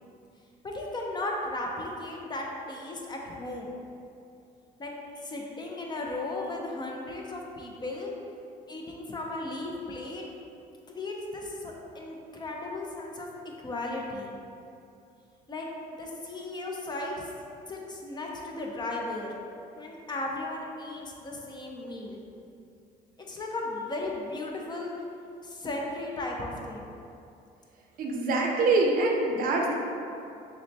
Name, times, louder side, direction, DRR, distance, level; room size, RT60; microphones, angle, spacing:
voice 1, 0.6-3.7 4.8-8.1 8.7-10.2 10.9-13.3 13.6-14.4 15.5-17.3 17.7-19.3 19.8-22.2 23.3-24.9 25.4-26.8, left 2 dB, 25° left, -1 dB, 0.5 m, -36 dB
voice 2, 28.0-29.7, right 2 dB, 60° right, 0 dB, 0.6 m, -24 dB
6.2 x 2.1 x 2.7 m, 2.6 s
cardioid pair, 110°, 17 cm